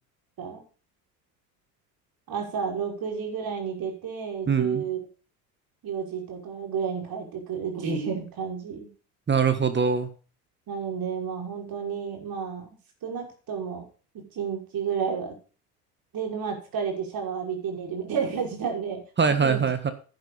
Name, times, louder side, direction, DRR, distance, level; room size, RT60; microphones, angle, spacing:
voice 1, 2.3-5.0 5.8-8.9 10.7-12.7 13.0-13.8 14.1-15.4 16.1-19.7, right 6 dB, 45° right, 2 dB, 5.8 m, -31 dB
voice 2, 4.5-4.8 9.3-10.1 19.2-19.9, right 6 dB, 20° right, 10 dB, 1.6 m, -23 dB
10.5 x 10.5 x 4.1 m, 0.37 s
hypercardioid pair, 75°, 50 cm